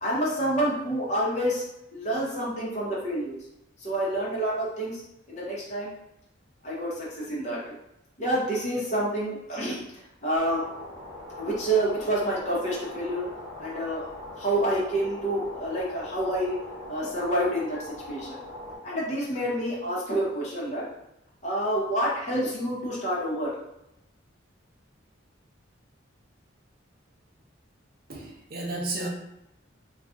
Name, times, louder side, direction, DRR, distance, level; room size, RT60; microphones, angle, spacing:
voice 1, 0.0-1.6 1.9-3.4 3.8-5.0 5.3-5.9 6.6-7.8 8.2-10.6 11.4-13.3 13.6-14.1 14.4-16.5 16.9-18.4 18.8-20.9 21.4-23.5, right 1 dB, 35° left, -5 dB, 0.8 m, -28 dB
sound 1, 10.4-18.8, left 1 dB, 30° right, 1.0 m, -41 dB
voice 2, 28.1-29.1, right 2 dB, 50° right, 0 dB, 0.6 m, -32 dB
2.5 x 2.3 x 3.7 m, 0.85 s
head